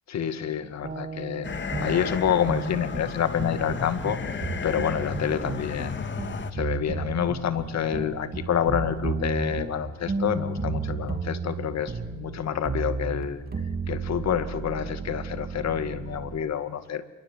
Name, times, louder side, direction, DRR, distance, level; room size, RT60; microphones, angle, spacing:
voice 1, 0.1-1.5 1.8-6.1 6.5-13.4 13.9-17.0, left 9 dB, 60° left, 10 dB, 2.1 m, -28 dB
sound 1, 0.8-16.4, right 4 dB, 30° right, 2.9 m, -33 dB
sound 2, 1.4-6.5, left 5 dB, 40° left, 1.9 m, -34 dB
27.5 x 23.5 x 7.4 m, 1.0 s
cardioid pair, 90°, 30 cm